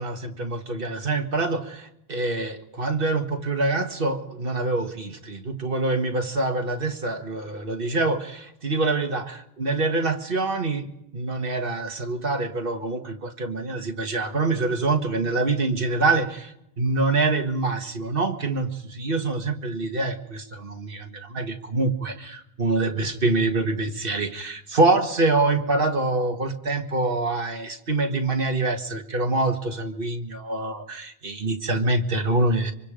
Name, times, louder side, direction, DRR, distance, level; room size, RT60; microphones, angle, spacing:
voice 1, 0.0-10.9 11.1-32.7, right 2 dB, 55° right, 5 dB, 1.8 m, -25 dB
25.0 x 25.0 x 5.1 m, 0.81 s
omnidirectional pair, 1.1 m